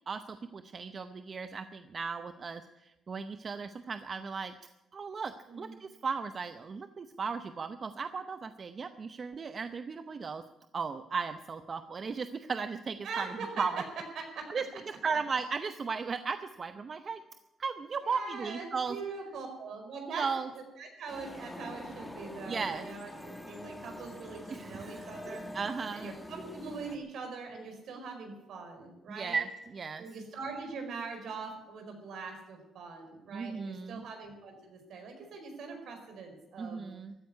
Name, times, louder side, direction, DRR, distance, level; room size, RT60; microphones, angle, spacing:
voice 1, 0.1-4.5 4.9-10.4 10.7-13.8 14.5-14.6 15.0-17.2 17.6-19.0 20.2-20.5 22.4-22.9 24.5-26.1 29.1-30.0 33.3-34.1 36.6-37.2, right 5 dB, 40° right, 10 dB, 0.7 m, -36 dB
voice 2, 13.0-13.7 14.1-14.4 18.0-20.3 20.8-25.4 25.9-29.4 30.0-36.9, right 4 dB, 70° right, 4 dB, 4.8 m, -42 dB
sound 1, 21.1-27.0, left 1 dB, 10° left, 1.9 m, -45 dB
14.5 x 9.4 x 9.7 m, 0.96 s
cardioid pair, 90°, 0 cm